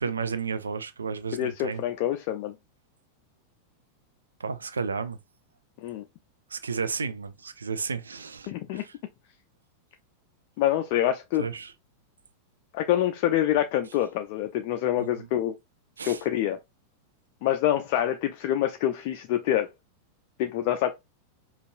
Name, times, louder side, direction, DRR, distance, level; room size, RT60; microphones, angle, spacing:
voice 1, 0.0-1.8 4.4-5.2 6.5-8.9 11.4-11.7 15.0-15.3 16.0-16.2, right 5 dB, 75° right, 0.4 m, -32 dB
voice 2, 1.3-2.5 5.8-6.0 8.5-8.8 10.6-11.5 12.7-15.5 16.0-16.6 17.4-19.7 20.4-20.9, left 12 dB, 45° left, 0.4 m, -26 dB
5.2 x 2.4 x 2.5 m
figure-of-eight pair, 90°, 0 cm